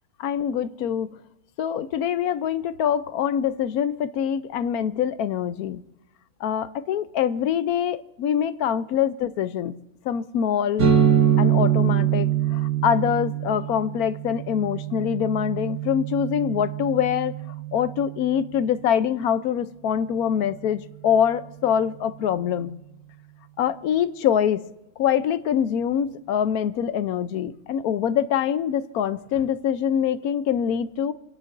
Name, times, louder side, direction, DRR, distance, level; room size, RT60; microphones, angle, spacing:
voice 1, 0.2-1.1 1.6-5.8 6.4-9.7 10.1-10.9 11.4-17.3 17.7-22.7 23.6-24.6 25.0-31.1, left 9 dB, 80° left, 1.2 m, -24 dB
sound 1, 10.8-18.4, right 9 dB, 70° right, 2.1 m, -24 dB
29.5 x 10.5 x 2.6 m
omnidirectional pair, 1.6 m